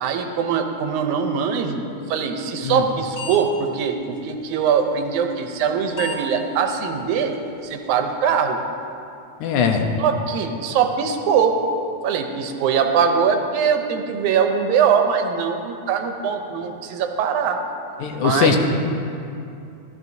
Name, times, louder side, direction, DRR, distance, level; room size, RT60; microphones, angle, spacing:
voice 1, 0.0-1.8 2.1-7.3 7.6-8.6 10.0-11.6 12.0-17.6 18.2-18.6, right 6 dB, 80° right, 5 dB, 2.1 m, -22 dB
sound 1, 2.6-2.9 3.1-3.4 3.6-3.7 4.7-4.8 5.7-5.8 6.0-6.2 6.7-6.8 7.2-7.3 7.7-7.8, left 3 dB, 45° left, 0.5 m, -32 dB
voice 2, 9.4-9.8 18.0-18.6, left 7 dB, 80° left, 4 dB, 2.2 m, -20 dB
13.5 x 12.5 x 2.7 m, 2.6 s
omnidirectional pair, 3.5 m